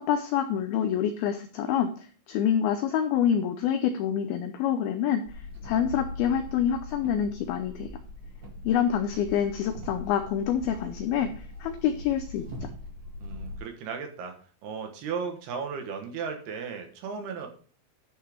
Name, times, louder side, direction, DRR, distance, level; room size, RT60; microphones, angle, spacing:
voice 1, 0.0-5.2 5.6-7.9 8.6-12.4, left 9 dB, 85° left, 8 dB, 2.1 m, -27 dB
sound 1, 5.3-13.6, left 2 dB, 45° right, 1.5 m, -41 dB
voice 2, 13.2-14.3 14.6-17.5, right 6 dB, 70° right, 4 dB, 3.1 m, -35 dB
10.5 x 5.5 x 5.0 m, 0.42 s
omnidirectional pair, 5.2 m